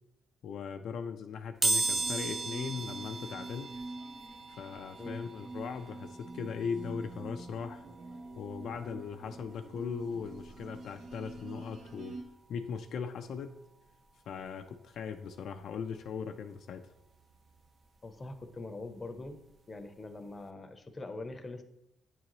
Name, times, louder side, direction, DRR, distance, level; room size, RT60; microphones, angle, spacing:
voice 1, 0.4-3.7 4.5-7.8 8.4-12.2 12.5-13.6 14.3-16.9, left 6 dB, 70° left, 6 dB, 0.3 m, -39 dB
sound 1, 1.6-12.3 12.8-12.9 14.0-14.1 14.4-16.5 16.8-19.5 19.8-20.0 20.3-20.4, right 2 dB, 35° right, 0.4 m, -38 dB
sound 2, 1.8-12.2, right 2 dB, 70° right, 0.9 m, -46 dB
voice 2, 18.0-19.4 19.7-21.6, left 2 dB, 25° left, 7 dB, 0.6 m, -43 dB
8.7 x 3.8 x 3.0 m, 0.86 s
cardioid pair, 90°, 0 cm